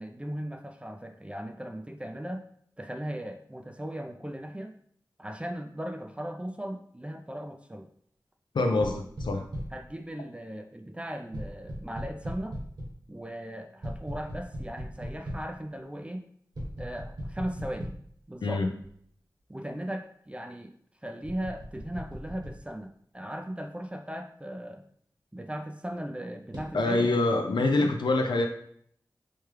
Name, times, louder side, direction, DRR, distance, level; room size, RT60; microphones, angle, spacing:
voice 1, 0.0-2.5 2.8-4.8 5.2-7.9 9.7-12.6 13.1-16.2 16.8-17.9 18.3-18.6 19.5-20.7 21.0-24.8 25.3-27.1 27.6-28.0, right 1 dB, 15° right, 4 dB, 0.4 m, -38 dB
voice 2, 8.5-9.5 18.4-18.7 26.7-28.5, left 2 dB, 80° left, 5 dB, 0.5 m, -25 dB
sound 1, 8.8-9.9 11.3-13.0 13.8-15.5 16.5-18.2 18.8-18.9 21.2-22.6 26.5-26.7, equal, 65° right, 1.4 m, -38 dB
4.5 x 2.2 x 3.2 m, 0.64 s
cardioid pair, 40°, 8 cm